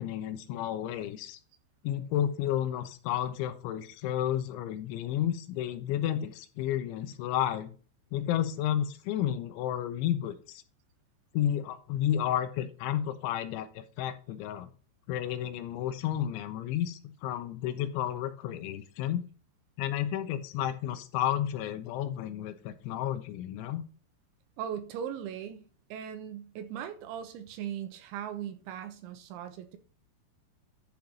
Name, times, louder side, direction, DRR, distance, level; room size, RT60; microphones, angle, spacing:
voice 1, 0.0-1.4 1.8-7.7 8.1-10.6 11.3-14.7 15.1-19.2 19.8-23.8, left 11 dB, 80° left, 3.0 m, -31 dB
voice 2, 24.6-29.8, right 9 dB, 80° right, 3.2 m, -39 dB
10.5 x 4.5 x 5.2 m
omnidirectional pair, 5.6 m